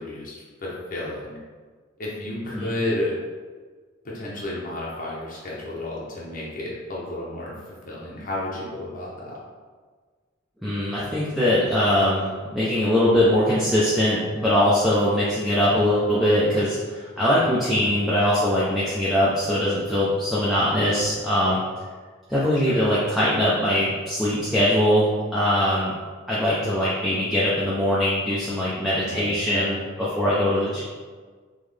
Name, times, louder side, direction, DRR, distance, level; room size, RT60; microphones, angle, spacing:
voice 1, 0.0-1.4 2.0-3.1 4.0-7.5 7.9-9.4 17.7-17.9 22.5-22.8 29.0-29.7, left 1 dB, 45° left, -5 dB, 0.8 m, -32 dB
voice 2, 10.6-21.6 22.3-25.9 26.3-30.8, left 1 dB, ahead, -10 dB, 0.6 m, -22 dB
3.8 x 3.1 x 3.3 m, 1.5 s
head